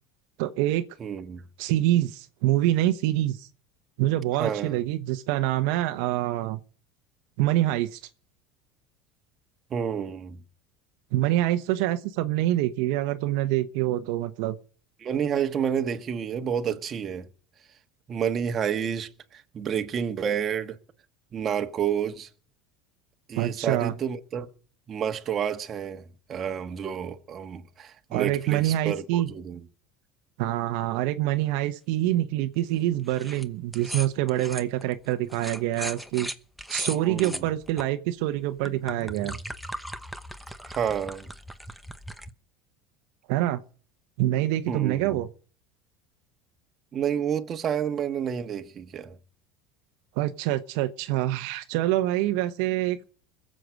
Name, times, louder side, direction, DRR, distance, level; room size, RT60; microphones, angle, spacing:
voice 1, 0.4-0.8 1.6-3.5 4.0-6.6 7.4-8.0 11.1-14.6 23.4-23.9 28.1-29.3 30.4-36.3 36.7-39.4 43.3-43.6 44.2-45.3 50.2-53.0, right 14 dB, 75° right, 1.0 m, -26 dB
voice 2, 1.0-1.4 4.4-4.8 9.7-10.4 15.0-17.3 18.1-20.8 21.3-22.3 23.3-24.5 24.9-29.6 37.0-37.4 40.7-41.3 44.7-45.2 46.9-49.2, right 8 dB, 35° right, 1.5 m, -29 dB
sound 1, 33.1-33.4 33.7-37.8 38.4-42.3, equal, ahead, 1.0 m, -38 dB
21.5 x 7.7 x 6.4 m
supercardioid pair, 125°, 0 cm